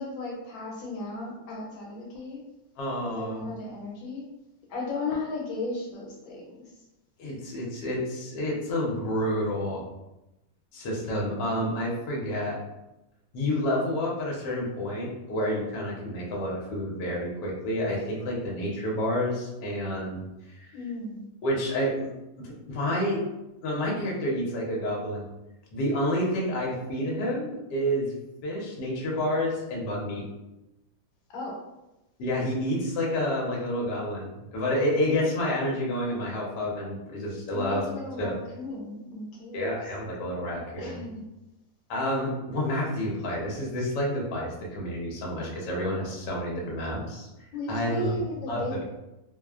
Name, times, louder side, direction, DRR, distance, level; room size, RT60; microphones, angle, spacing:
voice 1, 0.0-2.4 3.1-4.3 4.7-6.5 20.7-21.2 31.3-31.5 37.5-39.7 40.8-41.2 47.5-48.8, left 2 dB, 85° left, -2 dB, 1.4 m, -35 dB
voice 2, 2.8-3.4 7.2-9.8 10.7-12.6 13.3-20.3 20.6-20.7 21.4-22.1 22.4-23.2 23.6-25.2 25.7-28.1 28.4-30.2 32.2-34.3 34.5-37.9 38.2-38.3 39.5-41.1 41.9-47.3 47.7-48.2 48.5-48.8, equal, 65° left, -3 dB, 1.2 m, -29 dB
3.1 x 2.0 x 2.3 m, 0.97 s
omnidirectional pair, 2.1 m